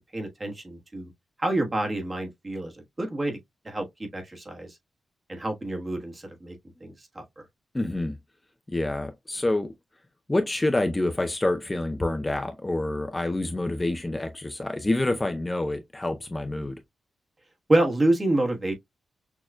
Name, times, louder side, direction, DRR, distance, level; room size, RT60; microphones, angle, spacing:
voice 1, 0.1-1.1 1.4-3.4 3.6-4.8 5.3-7.2 17.7-18.7, right 1 dB, 25° right, 1.2 m, -27 dB
voice 2, 7.7-8.2 8.7-9.7 10.3-16.8, left 2 dB, 20° left, 0.5 m, -27 dB
6.2 x 2.3 x 2.2 m
wide cardioid pair, 115°, 0 cm